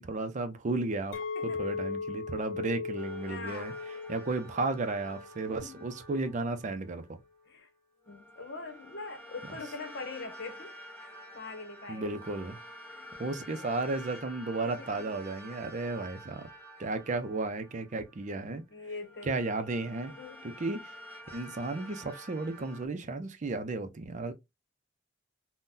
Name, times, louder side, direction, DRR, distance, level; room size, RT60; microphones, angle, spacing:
voice 1, 0.0-1.2 1.6-3.7 4.1-7.2 11.9-12.6 13.2-16.5 16.8-18.6 19.2-20.1 20.6-20.9 21.3-24.3, right 3 dB, 40° right, 0.5 m, -34 dB
Chink clink, 1.1-5.5 5.8-6.2, left 5 dB, 80° left, 0.4 m, -38 dB
voice 2, 1.3-1.7 3.2-3.8 5.5-5.8 7.5-7.7 8.1-10.7 11.0-12.4 12.9-13.1 13.5-13.7 14.6-15.1 16.8-16.9 18.7-19.5 20.1-20.5, left 3 dB, 60° left, 0.9 m, -43 dB
sound 1, 3.0-7.1 8.1-18.5 19.0-22.9, equal, 10° left, 1.1 m, -49 dB
3.7 x 2.1 x 2.5 m
head